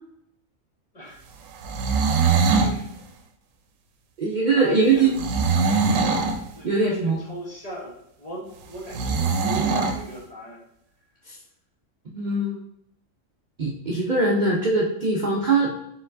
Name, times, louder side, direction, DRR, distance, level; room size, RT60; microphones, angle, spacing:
sound 1, 1.5-2.8 5.1-6.4 8.9-10.0, right 4 dB, 90° right, 1.0 m, -22 dB
voice 1, 2.6-2.9 4.5-5.1 6.5-10.6, right 1 dB, 35° left, -3 dB, 0.9 m, -38 dB
voice 2, 4.2-5.1 6.6-7.2 12.1-12.6 13.6-15.7, right 3 dB, 50° right, -3 dB, 0.6 m, -21 dB
4.3 x 3.9 x 2.5 m, 0.79 s
omnidirectional pair, 1.3 m